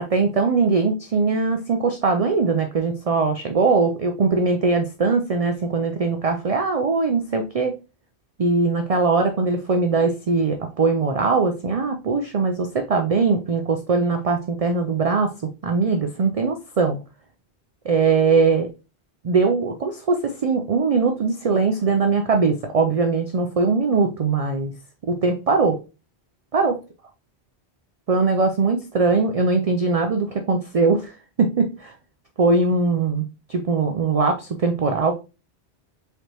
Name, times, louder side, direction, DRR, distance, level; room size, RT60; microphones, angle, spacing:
voice 1, 0.0-7.7 8.4-15.3 15.6-17.0 17.9-18.7 19.2-24.7 25.1-25.8 26.5-26.7 28.1-31.1 31.4-31.9 32.4-33.2 33.5-35.1, right 4 dB, 55° right, 5 dB, 0.4 m, -21 dB
4.8 x 3.1 x 2.8 m, 0.30 s
omnidirectional pair, 1.1 m